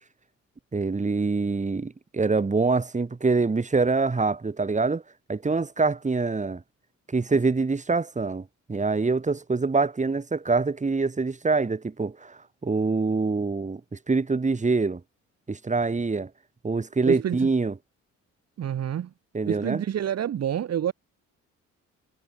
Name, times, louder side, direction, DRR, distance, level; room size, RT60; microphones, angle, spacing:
voice 1, 0.7-5.0 5.3-6.6 7.1-15.0 15.5-16.3 16.6-17.7 19.3-19.8, right 4 dB, 25° right, 3.6 m, -25 dB
voice 2, 17.0-17.5 18.6-19.1 19.5-20.9, right 10 dB, 55° right, 1.7 m, -28 dB
cardioid pair, 90°, 30 cm